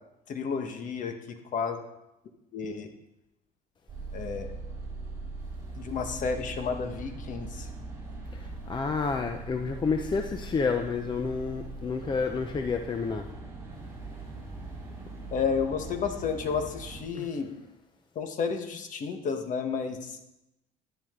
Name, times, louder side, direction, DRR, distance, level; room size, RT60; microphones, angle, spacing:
voice 1, 0.3-1.8 2.5-2.9 4.1-4.5 5.7-7.7 15.3-17.5 18.1-20.2, left 5 dB, 45° left, 6 dB, 1.4 m, -31 dB
sound 1, 3.9-17.0, right 2 dB, 15° right, 4.7 m, -41 dB
voice 2, 8.3-13.2 17.1-17.3, left 4 dB, 25° left, 5 dB, 0.7 m, -30 dB
11.5 x 10.5 x 3.8 m, 0.90 s
cardioid pair, 125°, 18 cm